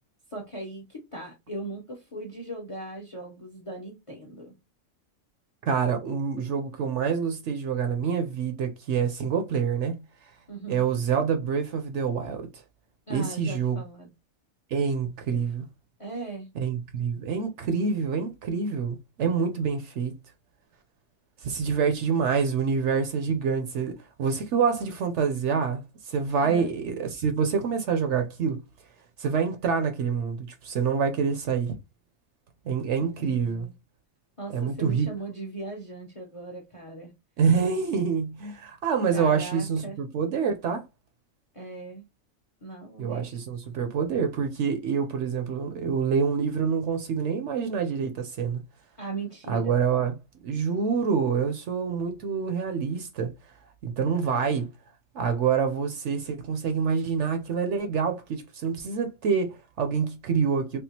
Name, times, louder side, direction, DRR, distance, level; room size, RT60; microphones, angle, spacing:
voice 1, 0.3-4.5 10.5-10.8 13.1-14.1 15.3-15.5 16.0-16.5 26.4-26.7 33.0-33.7 34.4-37.1 39.1-40.0 41.5-42.0 42.6-43.4 49.0-49.8, right 2 dB, 35° left, 0.5 m, -38 dB
voice 2, 5.7-10.0 10.7-12.5 13.1-13.8 14.7-15.7 16.6-20.1 21.4-28.6 29.2-31.7 32.6-33.7 34.5-35.1 37.4-40.8 43.0-48.6 49.5-50.1 50.4-53.3 53.8-54.7 55.1-60.8, right 6 dB, 65° right, 0.8 m, -26 dB
3.5 x 2.4 x 2.7 m
omnidirectional pair, 1.5 m